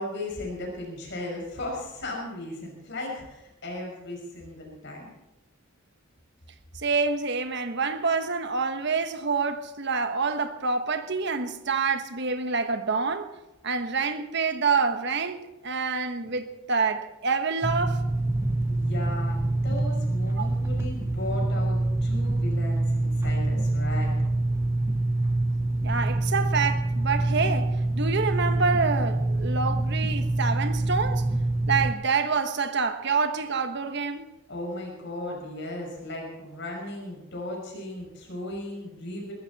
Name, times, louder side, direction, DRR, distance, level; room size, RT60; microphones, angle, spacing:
voice 1, 0.0-5.1 16.2-16.3 18.7-24.2 34.5-39.3, left 1 dB, 60° left, 6.3 m, -36 dB
voice 2, 6.7-13.3 13.6-18.0 20.4-20.5 25.8-31.2 31.7-34.2, right 4 dB, 55° right, 1.3 m, -27 dB
sound 1, 17.6-31.9, right 2 dB, 15° right, 0.9 m, -26 dB
21.5 x 14.5 x 4.2 m
head